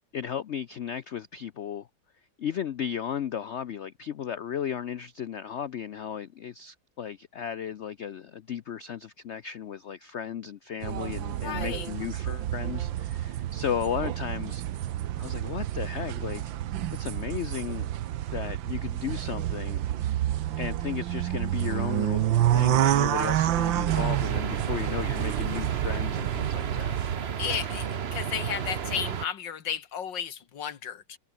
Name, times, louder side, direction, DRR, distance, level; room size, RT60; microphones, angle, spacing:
voice 1, 0.1-1.9 2.4-14.6 15.2-16.5 16.9-17.9 18.3-19.8 20.6-27.0, left 8 dB, 90° left, 0.6 m, -35 dB
sound 1, 10.8-27.2, right 12 dB, 85° right, 1.7 m, -29 dB
voice 2, 11.4-11.9 27.4-31.2, left 8 dB, 75° left, 2.3 m, -33 dB
sound 2, 23.9-29.3, right 7 dB, 45° right, 0.9 m, -33 dB
omnidirectional pair, 2.0 m